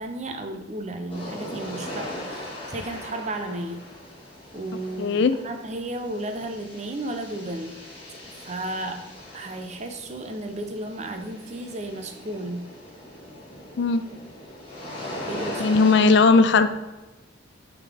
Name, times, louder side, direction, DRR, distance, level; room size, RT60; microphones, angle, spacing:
voice 1, 0.0-3.8 4.5-7.7 8.2-9.0 9.3-12.7 15.3-15.9, right 1 dB, 35° right, 5 dB, 0.6 m, -34 dB
sound 1, 1.1-16.2, left 1 dB, 30° left, 1.9 m, -39 dB
voice 2, 5.0-5.3 13.8-14.0 15.6-16.7, left 4 dB, 65° left, 11 dB, 0.4 m, -17 dB
8.2 x 3.7 x 3.4 m, 1.1 s
head